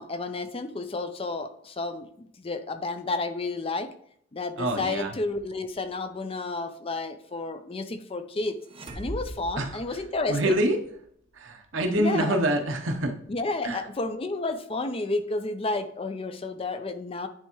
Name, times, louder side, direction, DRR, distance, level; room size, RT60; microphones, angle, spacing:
voice 1, 0.0-3.9 4.3-8.6 9.0-10.6 11.9-12.4 13.3-17.3, left 3 dB, 30° left, 9 dB, 0.5 m, -31 dB
voice 2, 4.6-5.1 9.6-9.8 10.3-10.8 11.3-13.1 13.6-13.8, right 1 dB, 70° right, 4 dB, 0.9 m, -26 dB
sound 1, 8.6-10.6, right 1 dB, 30° right, 0.7 m, -39 dB
9.8 x 3.4 x 3.1 m, 0.66 s
head